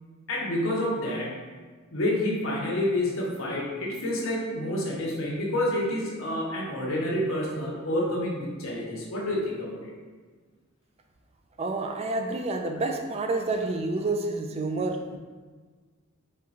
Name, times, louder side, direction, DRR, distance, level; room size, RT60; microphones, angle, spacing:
voice 1, 0.3-1.3 1.9-9.9, left 1 dB, 70° left, -3 dB, 1.0 m, -28 dB
voice 2, 11.6-15.2, right 2 dB, 30° right, 4 dB, 0.3 m, -29 dB
4.5 x 3.6 x 2.5 m, 1.4 s
head